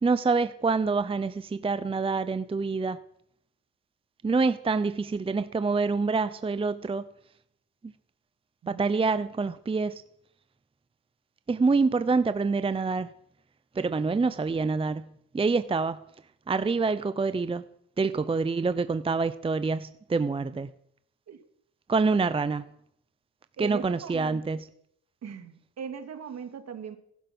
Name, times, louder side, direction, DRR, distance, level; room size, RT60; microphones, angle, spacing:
voice 1, 0.0-3.0 4.2-7.1 7.8-7.9 8.7-10.0 11.5-13.1 13.7-16.0 16.5-17.6 18.0-20.7 21.9-22.6 23.6-24.7, right 4 dB, 20° right, 0.7 m, -26 dB
voice 2, 23.6-24.4 25.2-27.0, right 7 dB, 60° right, 2.3 m, -39 dB
19.0 x 12.0 x 6.1 m
cardioid pair, 90°, 30 cm